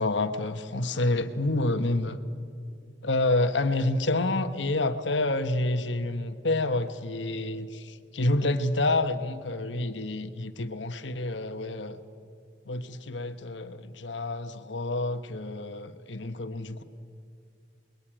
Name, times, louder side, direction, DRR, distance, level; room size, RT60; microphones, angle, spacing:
voice 1, 0.0-2.2 3.0-12.0 12.6-16.8, left 2 dB, 80° left, 9 dB, 1.3 m, -28 dB
28.5 x 22.0 x 8.9 m, 2.4 s
head